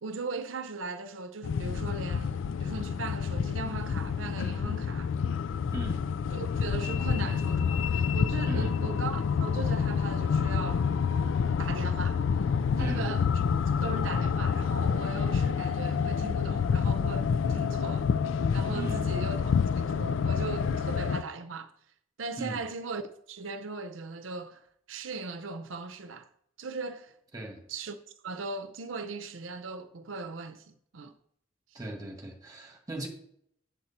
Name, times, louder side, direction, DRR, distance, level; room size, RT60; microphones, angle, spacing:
voice 1, 0.0-5.1 6.3-10.9 11.6-12.2 12.8-13.2 13.8-18.1 18.5-21.7 22.2-26.3 26.6-27.1 27.7-28.0 28.2-31.2 31.7-31.8, right 4 dB, 90° right, 0.7 m, -38 dB
sound 1, 1.4-21.2, left 6 dB, 80° left, 0.4 m, -28 dB
voice 2, 5.7-6.2 7.1-7.2 8.5-8.8 12.8-13.1 18.7-19.1 22.4-22.6 27.3-27.7 31.7-33.1, right 2 dB, 20° right, 1.9 m, -37 dB
8.1 x 7.2 x 4.3 m
head